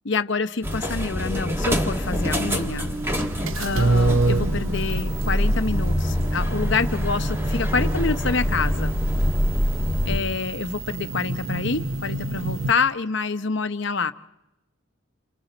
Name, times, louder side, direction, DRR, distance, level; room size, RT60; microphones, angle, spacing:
voice 1, 0.0-2.9 3.6-8.9 10.1-14.1, left 4 dB, 60° left, 0.8 m, -27 dB
sound 1, 0.6-10.2, equal, 10° right, 1.6 m, -25 dB
sound 2, 2.0-12.7, right 2 dB, 75° right, 0.8 m, -29 dB
29.5 x 28.0 x 4.0 m
head